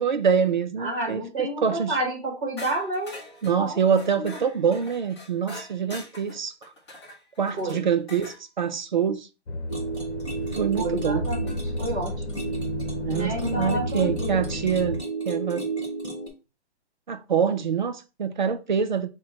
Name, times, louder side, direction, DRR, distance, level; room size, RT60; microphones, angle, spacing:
voice 1, 0.0-2.0 3.4-6.5 7.4-9.3 10.5-11.3 13.0-15.7 17.1-19.1, right 7 dB, 45° right, 0.4 m, -25 dB
voice 2, 0.8-3.2 3.6-3.8 4.2-4.4 7.6-7.8 10.8-12.5 13.1-14.4, right 1 dB, 15° right, 1.1 m, -30 dB
sound 1, 2.6-8.4 10.4-10.5 11.5-11.9, left 1 dB, 25° left, 1.0 m, -44 dB
sound 2, 9.5-15.0, left 1 dB, 75° left, 0.9 m, -32 dB
sound 3, 9.7-16.3, right 3 dB, ahead, 0.6 m, -33 dB
6.0 x 2.2 x 3.6 m
hypercardioid pair, 175°, 33 cm